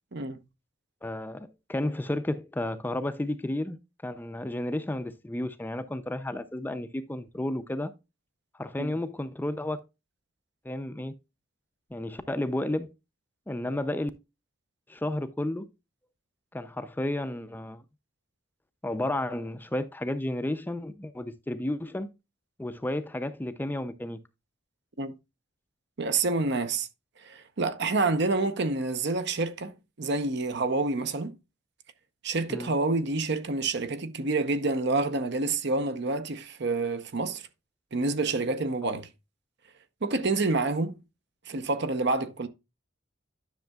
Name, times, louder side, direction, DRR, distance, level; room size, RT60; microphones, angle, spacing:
voice 1, 1.0-3.8 4.0-7.9 8.6-9.8 10.6-11.1 11.9-12.9 13.5-14.1 14.9-15.7 16.5-17.8 18.8-22.1 22.6-24.2 32.5-32.7 38.8-38.9, left 1 dB, 10° left, 0.4 m, -32 dB
voice 2, 26.0-26.9 27.2-31.3 32.2-37.4 37.9-39.1 40.0-41.0 41.5-42.5, right 3 dB, 60° right, 0.8 m, -28 dB
10.5 x 6.4 x 2.3 m
head